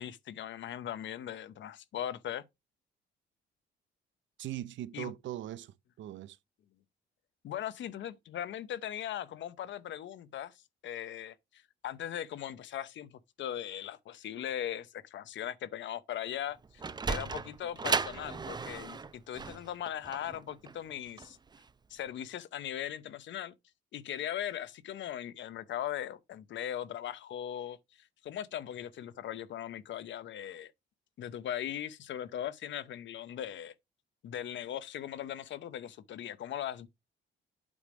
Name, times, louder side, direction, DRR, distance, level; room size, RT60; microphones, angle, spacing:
voice 1, 0.0-2.4 4.9-5.1 7.4-10.5 10.8-13.1 13.4-16.8 17.1-21.4 21.9-23.5 23.9-30.7 31.2-33.7 34.2-36.9, left 10 dB, 70° left, 0.8 m, -39 dB
voice 2, 4.4-6.4, right 13 dB, 70° right, 0.7 m, -40 dB
Sliding door, 16.5-21.7, right 4 dB, 20° right, 0.5 m, -36 dB
8.7 x 3.3 x 5.1 m
cardioid pair, 90°, 20 cm